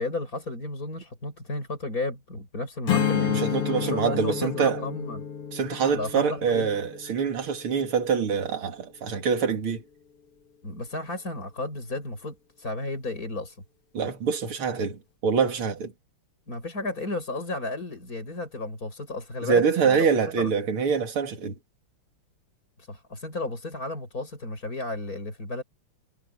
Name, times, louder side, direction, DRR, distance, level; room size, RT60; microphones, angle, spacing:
voice 1, 0.0-5.2 5.9-6.7 10.6-13.6 16.5-20.1 20.4-20.5 22.9-25.6, left 2 dB, 40° left, 7.8 m, -33 dB
Strum, 2.9-8.2, left 9 dB, 90° left, 3.1 m, -30 dB
voice 2, 3.3-4.9 5.5-9.8 13.9-15.9 19.4-21.5, right 6 dB, 75° right, 3.2 m, -25 dB
omnidirectional pair, 2.4 m